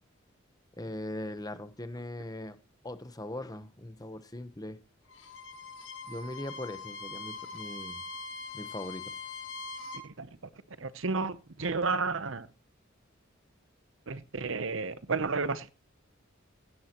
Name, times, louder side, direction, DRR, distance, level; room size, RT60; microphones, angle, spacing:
voice 1, 0.8-2.6 2.8-4.8 6.1-8.0 8.5-9.1, left 1 dB, 20° left, 1.0 m, -40 dB
Bowed string instrument, 5.1-10.1, left 3 dB, 75° left, 5.3 m, -42 dB
voice 2, 10.8-12.5 14.1-15.7, right 4 dB, 75° right, 0.9 m, -32 dB
16.5 x 10.5 x 3.0 m
head